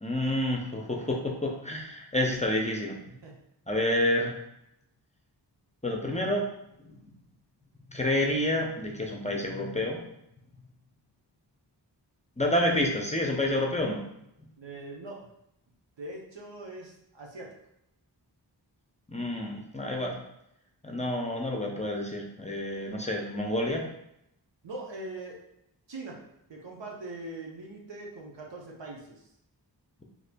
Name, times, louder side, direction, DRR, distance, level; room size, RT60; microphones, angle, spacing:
voice 1, 0.0-3.0 3.7-4.3 5.8-6.4 6.8-6.9 7.9-10.0 12.4-14.0 19.1-20.2 20.8-23.9, left 1 dB, 15° left, 1 dB, 0.5 m, -29 dB
voice 2, 14.6-15.3 16.0-17.5 24.6-25.4 25.9-26.2 26.5-29.3, right 2 dB, 90° right, -2 dB, 0.8 m, -41 dB
4.2 x 2.9 x 2.2 m, 0.80 s
wide cardioid pair, 75°, 42 cm